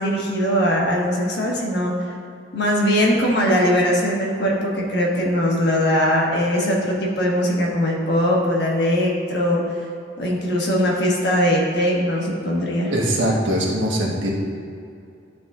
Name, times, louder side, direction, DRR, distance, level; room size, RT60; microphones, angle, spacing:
voice 1, 0.0-2.1 2.5-9.6 10.2-12.9, equal, 60° left, -2 dB, 1.3 m, -20 dB
voice 2, 12.9-14.3, right 1 dB, 80° right, -2 dB, 1.3 m, -21 dB
11.0 x 3.9 x 3.8 m, 2.4 s
head